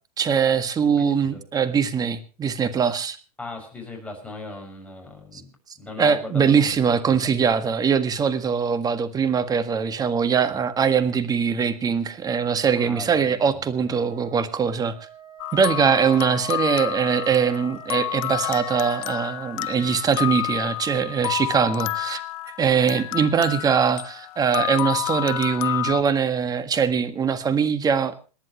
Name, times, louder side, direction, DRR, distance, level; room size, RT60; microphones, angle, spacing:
voice 1, 0.2-3.2 5.3-5.4 6.0-14.9 15.5-22.2 22.6-28.2, right 6 dB, 20° right, 10 dB, 1.6 m, -22 dB
voice 2, 1.0-1.4 3.4-5.5 5.8-7.3 10.5-10.6 12.7-13.9, left 2 dB, 5° left, 1 dB, 6.3 m, -38 dB
Wind instrument woodwind instrument, 13.8-19.1, right 6 dB, 70° right, 7.4 m, -46 dB
sound 1, 15.4-26.0, left 17 dB, 60° left, 0.7 m, -30 dB
27.5 x 10.5 x 3.1 m, 0.35 s
hypercardioid pair, 125°, 20 cm